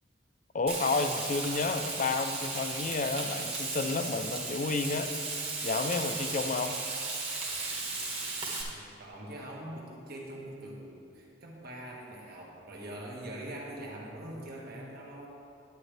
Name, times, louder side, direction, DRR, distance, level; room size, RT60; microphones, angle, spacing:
voice 1, 0.5-5.1 5.6-6.8, left 3 dB, 45° left, 8 dB, 0.5 m, -31 dB
Frying (food), 0.7-8.6, right 3 dB, 35° right, 1.5 m, -35 dB
voice 2, 8.7-15.3, right 1 dB, 55° right, -2 dB, 1.5 m, -43 dB
11.0 x 8.9 x 3.4 m, 2.7 s
head